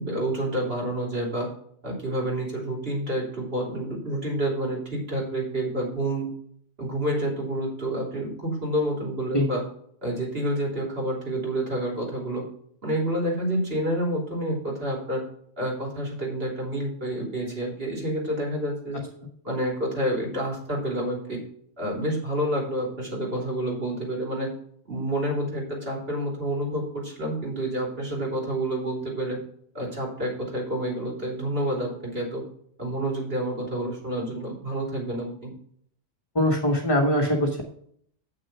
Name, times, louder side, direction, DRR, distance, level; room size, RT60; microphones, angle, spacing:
voice 1, 0.0-1.5 1.8-6.3 6.8-9.6 10.0-12.4 12.8-15.2 15.6-19.0 19.4-21.4 21.8-24.5 24.9-29.4 29.7-32.4 32.8-35.5, right 1 dB, 55° right, -1 dB, 3.5 m, -28 dB
voice 2, 36.3-37.6, left 1 dB, 20° left, 0 dB, 1.2 m, -22 dB
7.9 x 6.3 x 5.9 m, 0.64 s
omnidirectional pair, 1.2 m